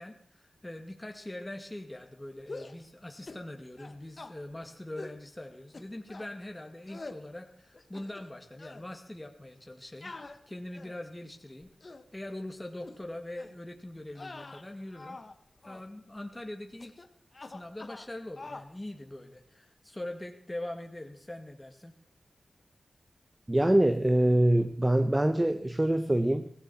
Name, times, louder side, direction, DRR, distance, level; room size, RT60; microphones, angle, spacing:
voice 1, 0.0-10.1 10.5-11.7 12.1-15.2 15.6-17.0 17.4-21.9, left 1 dB, 20° left, 3 dB, 2.2 m, -42 dB
sound 1, 2.4-2.8 3.3-3.5 3.8-4.3 5.0-5.2 5.7-6.3 6.9-7.2 7.7-8.3 8.6-8.8 10.0-11.1 11.6-12.1 12.8-13.0 13.4-13.6 14.1-15.3 15.6-15.9 16.8-17.1 17.3-18.1 18.4-18.7, left 3 dB, 50° left, 1.4 m, -45 dB
voice 2, 23.5-26.5, right 1 dB, 20° right, 9 dB, 1.1 m, -24 dB
17.0 x 15.5 x 4.4 m, 0.69 s
cardioid pair, 40°, 0 cm